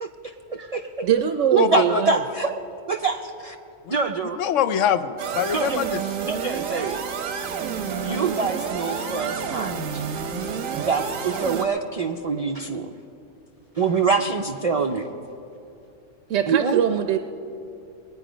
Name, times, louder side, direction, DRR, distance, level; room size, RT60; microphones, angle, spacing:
voice 1, 0.0-0.9 1.5-2.5 2.9-3.6 3.9-4.4 5.5-5.9 6.2-7.0 8.0-10.0 10.7-12.9 13.8-15.1 16.5-16.8, right 5 dB, 50° right, 4 dB, 0.4 m, -25 dB
voice 2, 1.0-2.2 16.3-17.2, right 9 dB, 70° right, 8 dB, 0.9 m, -22 dB
voice 3, 1.6-2.2 3.8-3.9 4.4-6.0, left 9 dB, 70° left, 12 dB, 1.0 m, -24 dB
sound 1, 5.2-11.7, right 6 dB, 90° right, 1.3 m, -29 dB
22.0 x 9.4 x 5.0 m, 2.7 s
omnidirectional pair, 1.4 m